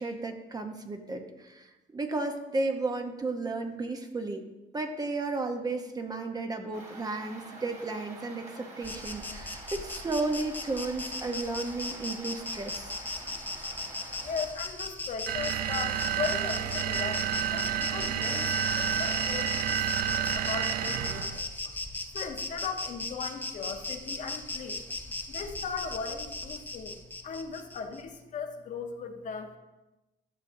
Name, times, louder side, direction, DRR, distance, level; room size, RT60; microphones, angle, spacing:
voice 1, 0.0-4.4 4.7-12.9, right 3 dB, 20° right, 5 dB, 0.8 m, -33 dB
sound 1, 6.7-14.5, right 3 dB, 45° right, 2.5 m, -47 dB
Insect, 8.8-28.0, left 2 dB, 10° left, 0.6 m, -37 dB
voice 2, 14.2-21.8 22.1-24.9 25.3-27.0 27.2-29.6, left 5 dB, 50° left, 5 dB, 0.9 m, -38 dB
sound 2, 15.3-21.4, right 11 dB, 65° right, 0.5 m, -30 dB
11.5 x 6.3 x 2.6 m, 1.0 s
cardioid pair, 110°, 17 cm